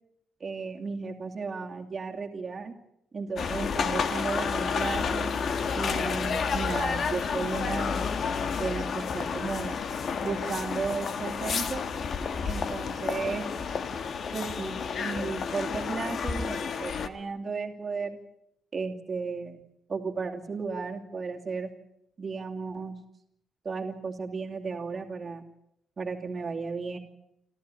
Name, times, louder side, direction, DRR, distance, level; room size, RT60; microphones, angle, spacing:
voice 1, 0.4-2.7 3.1-5.3 5.8-8.1 8.5-9.8 10.2-11.8 12.4-13.5 14.3-18.2 18.7-19.6 19.9-21.7 22.2-23.0 23.6-25.4 26.0-27.0, right 4 dB, 30° right, 3 dB, 2.6 m, -34 dB
sound 1, 3.4-17.1, left 6 dB, 45° left, 1.5 m, -30 dB
28.5 x 14.0 x 9.8 m, 0.78 s
wide cardioid pair, 175°, 0 cm